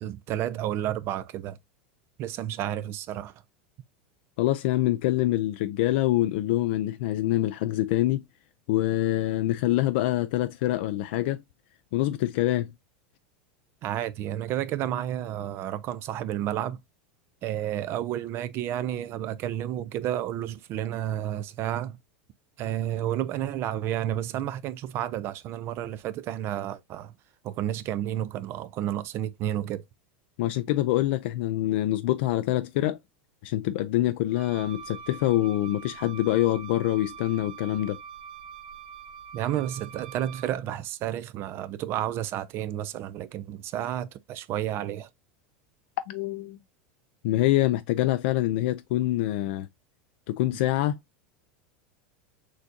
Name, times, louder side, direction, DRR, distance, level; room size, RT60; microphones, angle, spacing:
voice 1, 0.0-1.6 2.2-3.3 13.8-16.8 17.4-22.0 22.6-27.1 27.4-29.8 39.3-45.1, right 12 dB, 45° right, 0.4 m, -31 dB
voice 2, 4.4-8.2 8.7-11.4 11.9-12.7 30.4-33.0 33.4-38.0 46.1-46.6 47.2-49.7 50.3-51.0, left 15 dB, 70° left, 0.3 m, -25 dB
Wind instrument woodwind instrument, 34.3-40.6, right 7 dB, 75° right, 1.7 m, -44 dB
6.3 x 2.7 x 2.5 m
supercardioid pair, 120°, 6 cm